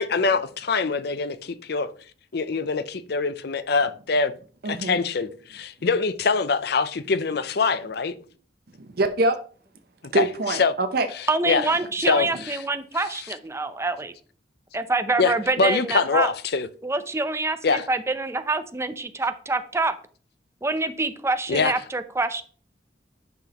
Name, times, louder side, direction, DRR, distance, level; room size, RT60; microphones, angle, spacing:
voice 1, 0.0-1.9 2.3-4.3 4.6-8.1 10.0-10.7 11.1-11.7 12.0-12.6 15.2-16.7 17.6-17.9 21.5-21.7, left 4 dB, 65° left, 0.6 m, -24 dB
voice 2, 4.6-5.0 8.8-9.3 10.1-11.1, right 2 dB, 60° right, 0.7 m, -24 dB
voice 3, 11.3-14.1 14.7-16.3 16.8-20.0 20.6-22.4, right 3 dB, 15° right, 0.6 m, -26 dB
10.5 x 5.9 x 3.0 m
head